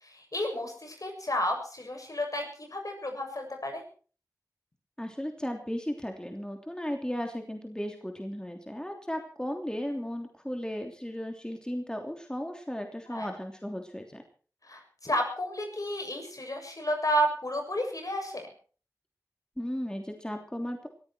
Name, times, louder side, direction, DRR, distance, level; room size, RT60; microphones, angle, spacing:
voice 1, 0.3-3.8 13.1-13.3 14.7-18.5, equal, 60° left, 3 dB, 7.0 m, -31 dB
voice 2, 5.0-14.2 19.6-20.9, equal, 10° left, 4 dB, 3.1 m, -35 dB
22.0 x 14.5 x 4.5 m, 0.41 s
wide cardioid pair, 45°, 7 cm